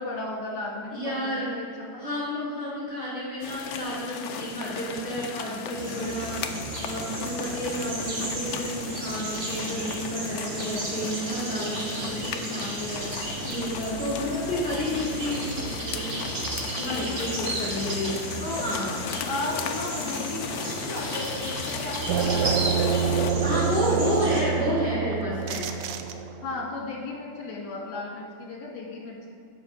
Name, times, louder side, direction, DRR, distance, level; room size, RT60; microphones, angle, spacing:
voice 1, 0.0-2.0 14.2-14.4 16.8-17.9 18.4-18.7 19.2-24.4 26.4-29.3, left 2 dB, 70° left, -2 dB, 2.5 m, -35 dB
voice 2, 0.9-1.5 2.0-6.5 6.8-16.3 16.8-18.2 18.6-18.9 23.4-25.7, equal, 30° left, -8 dB, 2.3 m, -31 dB
sound 1, 3.4-23.3, left 7 dB, 85° left, 0.8 m, -37 dB
sound 2, 5.7-24.4, right 2 dB, 55° right, 2.2 m, -34 dB
sound 3, 22.1-26.6, right 6 dB, 75° right, 1.1 m, -27 dB
7.8 x 6.0 x 5.3 m, 2.4 s
omnidirectional pair, 2.2 m